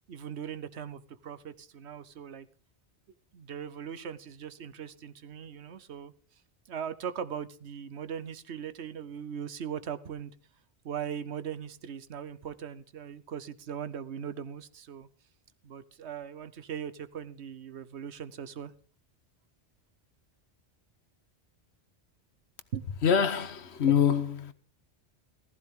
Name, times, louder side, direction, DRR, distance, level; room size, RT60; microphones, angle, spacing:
voice 1, 0.1-2.5 3.3-6.1 6.7-10.3 10.8-15.1 15.6-18.7 22.7-22.8 23.8-24.0, right 8 dB, 90° right, 1.2 m, -39 dB
voice 2, 23.0-24.5, left 8 dB, 75° left, 1.3 m, -25 dB
15.0 x 14.5 x 3.7 m
omnidirectional pair, 1.1 m